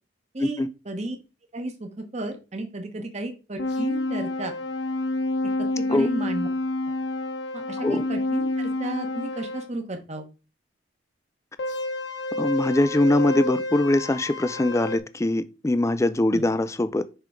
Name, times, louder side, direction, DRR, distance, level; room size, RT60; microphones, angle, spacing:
voice 1, 0.3-1.2 1.5-4.5 5.6-6.5 7.5-10.3 16.3-16.4, right 2 dB, 35° right, 1.2 m, -33 dB
sound 1, 3.6-9.7 11.6-15.0, left 2 dB, 65° left, 1.0 m, -29 dB
voice 2, 12.4-17.1, left 1 dB, 15° left, 0.4 m, -22 dB
6.7 x 3.6 x 5.0 m
head